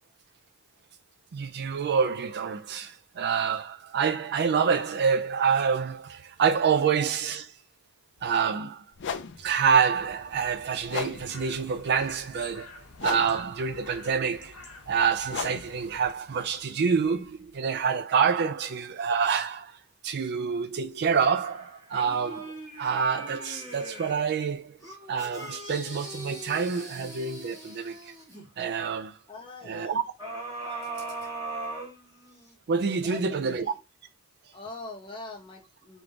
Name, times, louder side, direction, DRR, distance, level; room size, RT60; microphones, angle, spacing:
voice 1, 1.3-7.5 8.2-8.8 9.4-12.7 13.0-14.6 14.9-19.8 20.0-24.8 25.1-28.1 28.6-29.2 29.7-30.0 30.6-30.9 32.7-33.7, right 6 dB, 50° right, 0.4 m, -27 dB
sound 1, 8.2-8.3 8.9-17.8, left 6 dB, 55° left, 0.5 m, -40 dB
sound 2, 10.0-16.1, left 3 dB, 75° left, 1.0 m, -49 dB
sound 3, 21.1-24.3 24.8-28.5 30.2-32.5 33.0-33.1, right 2 dB, 15° right, 1.6 m, -40 dB
voice 2, 29.3-30.0 33.0-33.8 34.5-36.0, left 3 dB, 25° left, 1.1 m, -43 dB
3.4 x 3.1 x 3.7 m
head